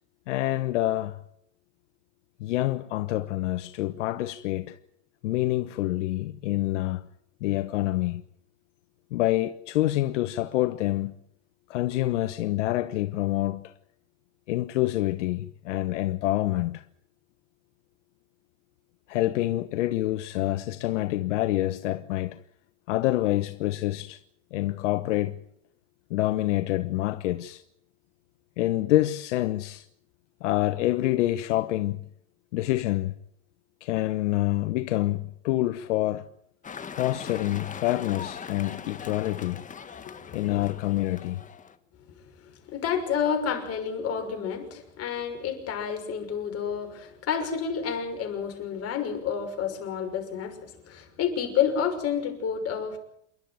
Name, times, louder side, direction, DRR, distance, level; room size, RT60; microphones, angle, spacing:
voice 1, 0.3-1.2 2.4-4.8 5.2-7.1 7.4-8.2 9.1-11.1 11.7-13.7 14.5-16.8 19.1-22.4 22.9-24.2 24.5-25.4 26.1-27.6 28.6-29.9 30.4-32.0 32.5-33.1 33.8-36.3 36.9-39.6 40.3-41.4, left 16 dB, 80° left, 1.0 m, -27 dB
sound 1, 36.6-41.8, left 6 dB, 20° left, 1.6 m, -41 dB
voice 2, 40.0-40.6 42.4-53.0, left 7 dB, 40° left, 6.0 m, -30 dB
28.5 x 12.0 x 9.4 m
supercardioid pair, 115°, 36 cm